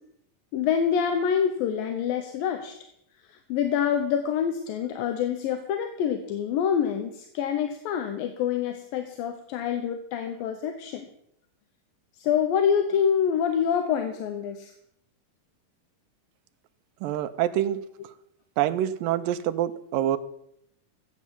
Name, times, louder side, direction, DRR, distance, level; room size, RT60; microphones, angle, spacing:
voice 1, 0.5-2.7 3.3-11.1 12.1-14.7, left 8 dB, 85° left, 7 dB, 2.7 m, -26 dB
voice 2, 17.0-17.8 18.6-20.2, right 12 dB, 90° right, 10 dB, 2.4 m, -26 dB
15.0 x 8.5 x 7.0 m, 0.75 s
omnidirectional pair, 3.9 m